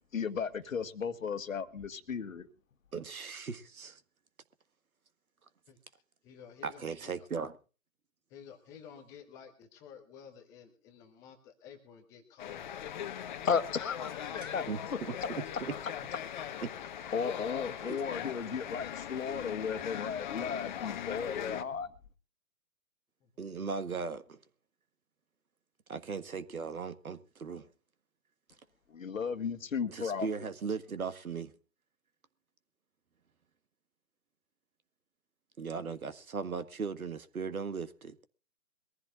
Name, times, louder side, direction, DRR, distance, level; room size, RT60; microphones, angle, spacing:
voice 1, 0.1-2.5 13.4-15.0 17.1-21.9 28.9-30.3, left 6 dB, 65° left, 1.6 m, -35 dB
voice 2, 2.9-4.0 6.6-7.6 14.4-15.7 16.6-16.7 17.8-18.0 23.4-24.4 25.9-27.7 29.9-31.5 35.6-38.2, right 5 dB, 70° right, 1.7 m, -38 dB
voice 3, 5.7-7.3 8.3-13.5 16.8-16.9 17.2-17.3 23.2-23.3, left 7 dB, 5° left, 0.7 m, -53 dB
sound 1, 12.4-21.6, left 10 dB, 30° left, 1.1 m, -40 dB
22.5 x 15.0 x 2.4 m
figure-of-eight pair, 140°, 44 cm